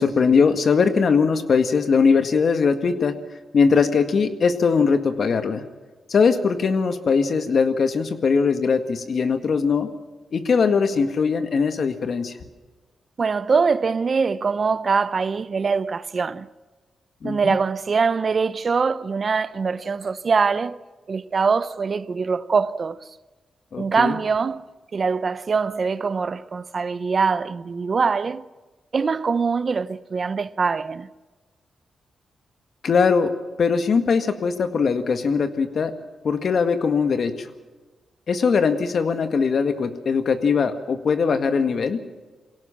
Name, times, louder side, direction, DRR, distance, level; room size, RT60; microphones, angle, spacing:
voice 1, 0.0-3.2 3.5-5.6 6.1-9.9 10.3-12.3 17.2-17.6 23.7-24.2 32.8-33.3 33.6-35.9 36.2-37.5 38.3-42.0, left 5 dB, 60° left, 1.9 m, -20 dB
voice 2, 13.2-16.5 17.2-20.8 21.1-23.0 23.8-24.7 24.9-28.4 28.9-31.1, right 5 dB, 45° right, 0.7 m, -23 dB
23.0 x 17.5 x 7.4 m
cardioid pair, 80°, 0 cm